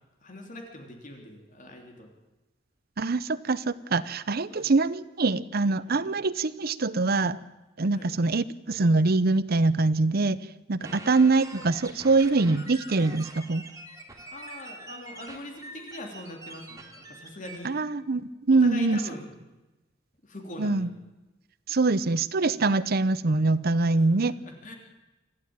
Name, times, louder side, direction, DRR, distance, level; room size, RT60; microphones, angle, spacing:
voice 1, 0.2-2.1 4.5-4.7 5.9-6.0 7.9-8.1 10.8-11.0 14.3-17.7 18.6-19.4 20.2-20.9 23.9-24.7, left 1 dB, 45° left, 2 dB, 3.3 m, -42 dB
voice 2, 3.0-7.4 7.8-10.4 10.7-13.6 17.6-18.2 18.5-19.0 20.6-20.9 21.7-24.3, right 3 dB, 55° right, 16 dB, 0.7 m, -24 dB
sound 1, 10.8-17.6, right 2 dB, 20° right, 3.1 m, -44 dB
25.5 x 14.5 x 8.8 m, 1.1 s
head